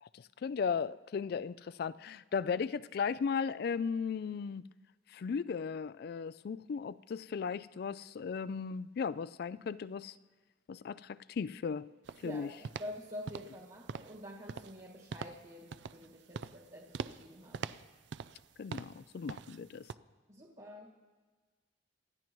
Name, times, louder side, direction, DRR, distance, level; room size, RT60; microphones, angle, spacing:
voice 1, 0.0-4.6 5.1-10.1 10.7-11.9 12.2-12.5 18.6-19.9, left 6 dB, 55° left, 0.3 m, -36 dB
sound 1, 12.0-12.3 12.6-13.0 13.3-13.6 13.9-14.2 14.5-14.8 15.1-15.4 15.7-16.1 16.3-16.6 16.9-17.2 17.5-18.4 18.7-19.0 19.3-19.6 19.9-20.0, right 5 dB, 70° right, 0.4 m, -42 dB
voice 2, 12.8-17.6 20.3-20.9, left 1 dB, 40° right, 1.7 m, -47 dB
26.5 x 11.0 x 3.1 m
head